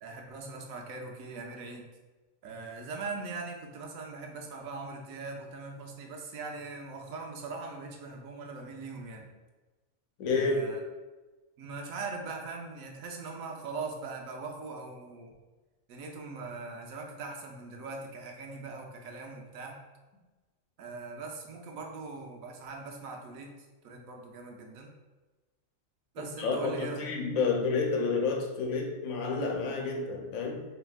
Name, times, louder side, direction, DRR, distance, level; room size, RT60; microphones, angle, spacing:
voice 1, 0.0-1.9 2.4-9.3 10.3-10.8 11.6-15.3 15.9-19.8 20.8-23.5 23.8-24.9 26.1-27.1, right 3 dB, 85° right, 2 dB, 1.1 m, -41 dB
voice 2, 10.2-10.6 26.2-30.6, left 4 dB, 90° left, 1 dB, 1.1 m, -30 dB
4.4 x 2.9 x 2.3 m, 1.2 s
omnidirectional pair, 1.4 m